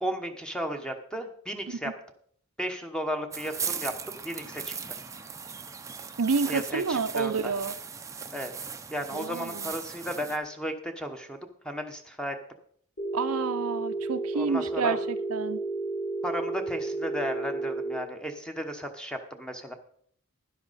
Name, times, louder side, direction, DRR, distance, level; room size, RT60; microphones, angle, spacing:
voice 1, 0.0-1.9 2.6-4.7 6.5-7.5 8.3-8.5 8.9-11.4 11.6-12.4 14.3-15.0 16.2-19.7, equal, 5° left, 5 dB, 1.0 m, -34 dB
sound 1, 3.3-10.4, right 6 dB, 15° right, 0.6 m, -38 dB
voice 2, 6.2-7.7 9.1-9.7 13.1-15.6, right 5 dB, 90° right, 10 dB, 0.7 m, -29 dB
Telephone, 13.0-18.0, right 2 dB, 70° left, 3.1 m, -32 dB
11.5 x 11.0 x 4.1 m, 0.63 s
head